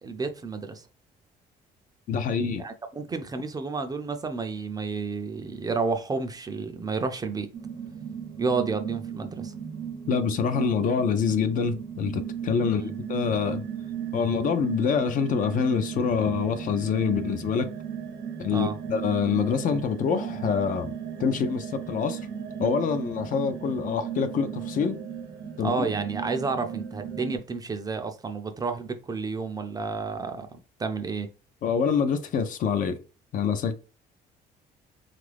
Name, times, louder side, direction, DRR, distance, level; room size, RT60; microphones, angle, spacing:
voice 1, 0.0-0.9 2.5-7.5 8.4-9.5 12.6-12.9 18.5-18.8 25.6-30.5 30.8-31.3, right 4 dB, 20° right, 0.4 m, -31 dB
voice 2, 2.1-2.6 10.1-13.6 14.1-17.7 18.4-20.9 21.2-22.2 22.6-25.0 25.6-25.9 31.6-33.0 33.3-33.7, left 6 dB, 50° left, 0.5 m, -26 dB
sound 1, 7.5-27.4, right 8 dB, 70° right, 0.7 m, -36 dB
3.0 x 2.5 x 3.3 m
cardioid pair, 110°, 17 cm